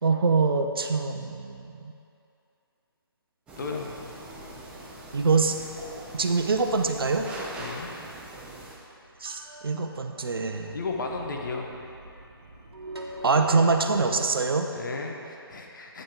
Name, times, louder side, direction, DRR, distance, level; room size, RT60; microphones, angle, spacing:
voice 1, 0.0-1.9 5.1-5.6 6.1-7.3 9.2-10.8 13.2-14.7, right 4 dB, 65° right, 5 dB, 0.7 m, -24 dB
sound 1, 3.5-8.8, right 1 dB, 10° right, 0.8 m, -42 dB
voice 2, 3.6-4.1 7.6-7.9 10.7-11.7 14.7-16.0, left 3 dB, 50° left, 1 dB, 1.1 m, -34 dB
sound 2, 3.9-14.5, right 1 dB, 80° right, 1.3 m, -45 dB
9.1 x 7.8 x 3.6 m, 2.6 s
figure-of-eight pair, 145°, 13 cm